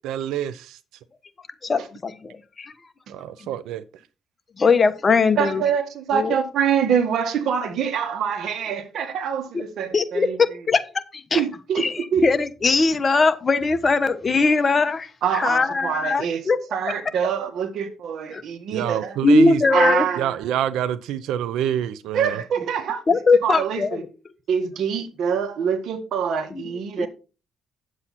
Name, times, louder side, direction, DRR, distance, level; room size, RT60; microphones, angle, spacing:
voice 1, 0.0-0.8 3.1-3.8 18.7-19.6 20.2-22.4, right 11 dB, 90° right, 0.6 m, -26 dB
voice 2, 1.6-2.7 3.4-3.5 4.6-5.6 6.1-6.3 9.5-9.6 9.9-10.8 11.1-11.4 11.8-16.6 18.3-18.4 19.2-20.0 23.1-24.1 26.5-26.6 27.0-27.1, left 4 dB, 35° left, 1.1 m, -20 dB
voice 3, 5.4-10.4 11.3-11.8 12.1-12.2 15.2-19.2 19.7-20.3 22.1-23.0 23.4-24.0 24.5-27.1, right 7 dB, 70° right, 1.7 m, -25 dB
9.4 x 7.6 x 4.2 m
cardioid pair, 90°, 0 cm